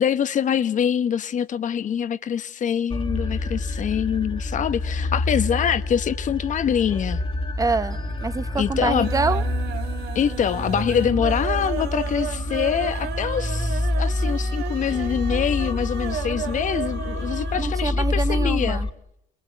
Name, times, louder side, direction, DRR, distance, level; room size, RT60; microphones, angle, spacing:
voice 1, 0.0-7.2 8.6-9.1 10.1-18.8, left 8 dB, 50° left, 1.2 m, -24 dB
sound 1, 2.9-18.9, left 2 dB, 30° left, 2.0 m, -27 dB
Wind instrument woodwind instrument, 4.8-9.3, left 6 dB, 85° left, 5.9 m, -52 dB
sound 2, 6.9-7.6 7.9-8.4 8.7-17.7 18.0-18.1 18.4-18.5, right 9 dB, 75° right, 1.9 m, -34 dB
voice 2, 7.6-9.4 17.6-18.9, right 4 dB, 20° right, 1.2 m, -26 dB
29.5 x 21.5 x 9.3 m
cardioid pair, 110°, 17 cm